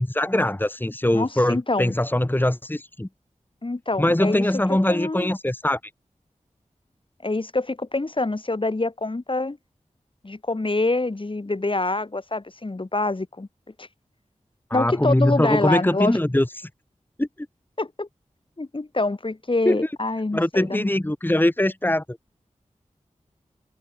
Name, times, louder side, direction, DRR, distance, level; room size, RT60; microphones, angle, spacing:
voice 1, 0.0-3.1 4.0-5.8 14.7-16.7 17.2-17.3 19.7-19.8 20.3-22.2, left 1 dB, 15° left, 2.3 m, -22 dB
voice 2, 1.1-1.9 3.6-4.4 4.9-5.3 7.2-9.6 10.2-13.5 13.8-13.9 14.7-16.2 17.8-18.1 18.6-20.9, left 2 dB, 40° left, 4.7 m, -26 dB
wide cardioid pair, 50°, 13 cm